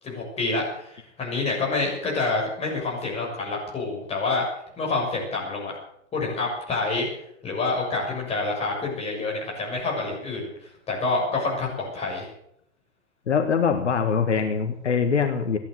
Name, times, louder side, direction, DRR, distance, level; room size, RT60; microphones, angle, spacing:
voice 1, 0.0-4.4 4.8-5.8 6.1-7.1 7.4-10.5 10.9-12.3, left 3 dB, 15° left, -2 dB, 6.9 m, -27 dB
voice 2, 13.3-15.6, left 6 dB, 70° left, 7 dB, 1.8 m, -23 dB
15.0 x 11.0 x 7.9 m, 0.73 s
figure-of-eight pair, 120°, 36 cm